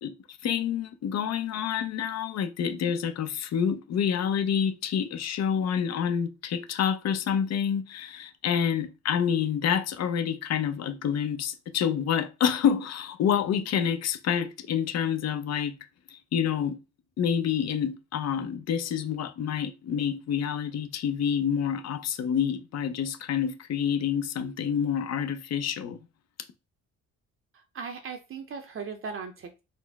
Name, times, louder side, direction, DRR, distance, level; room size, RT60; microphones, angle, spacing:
voice 1, 0.0-15.8 16.1-16.8 17.2-26.0, left 8 dB, 60° left, 0.6 m, -28 dB
voice 2, 27.5-29.6, right 5 dB, 45° right, 0.6 m, -38 dB
4.1 x 2.1 x 3.4 m
cardioid pair, 90°, 30 cm